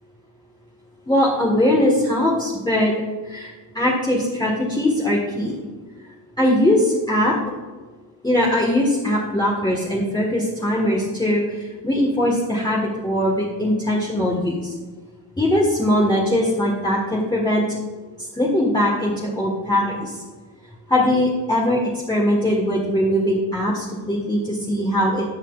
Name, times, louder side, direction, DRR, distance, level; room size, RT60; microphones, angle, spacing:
voice 1, 1.1-2.9 3.3-5.6 6.4-7.4 8.2-14.7 15.4-17.8 18.3-20.2 20.9-25.2, left 1 dB, 10° left, -4 dB, 1.4 m, -21 dB
17.5 x 5.9 x 2.4 m, 1.3 s
cardioid pair, 100°, 45 cm